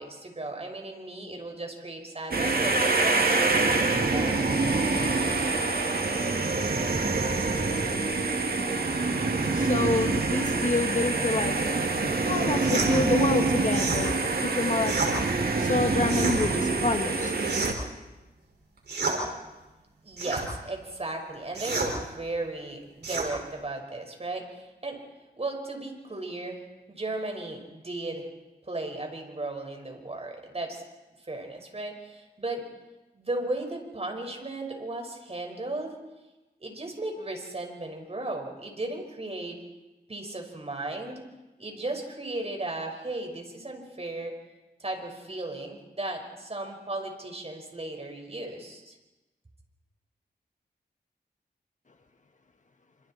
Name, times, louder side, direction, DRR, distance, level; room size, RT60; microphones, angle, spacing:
voice 1, 0.0-4.6 20.0-25.0 25.4-28.3 28.7-30.8 31.3-32.7 33.1-36.0 36.6-39.6 40.1-41.3 41.6-44.4 44.8-49.0, right 2 dB, 35° right, 3 dB, 5.5 m, -35 dB
sound 1, 2.3-17.7, right 3 dB, 60° right, 2.6 m, -26 dB
voice 2, 9.5-11.6 12.3-15.0 15.6-17.3, left 3 dB, 45° left, 5 dB, 1.8 m, -28 dB
sound 2, 12.6-12.9 13.7-14.0 14.8-15.1 16.0-16.4 17.4-17.9 18.9-19.2 20.2-20.5 21.5-21.9 23.0-23.3, right 4 dB, 75° right, 5.7 m, -30 dB
28.5 x 26.5 x 4.5 m, 1.1 s
wide cardioid pair, 65°, 17 cm